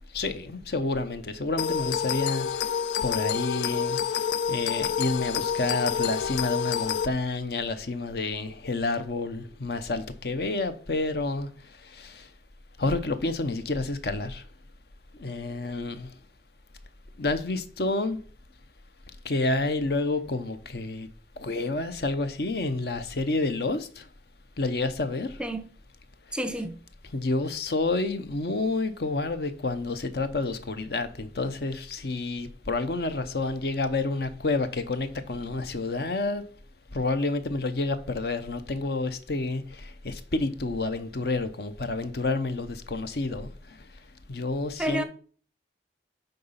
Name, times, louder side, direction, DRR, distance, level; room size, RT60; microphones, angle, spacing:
voice 1, 0.1-12.3 12.8-14.5 15.1-16.1 17.2-18.2 19.2-21.1 21.4-24.1 24.6-25.4 26.3-26.4 27.1-36.5 36.9-43.9 44.3-45.0, left 3 dB, 60° left, 0.7 m, -29 dB
sound 1, 1.6-7.1, left 8 dB, 85° left, 0.5 m, -28 dB
voice 2, 26.3-26.8 44.8-45.0, right 1 dB, 5° right, 0.6 m, -30 dB
9.1 x 3.9 x 5.7 m
head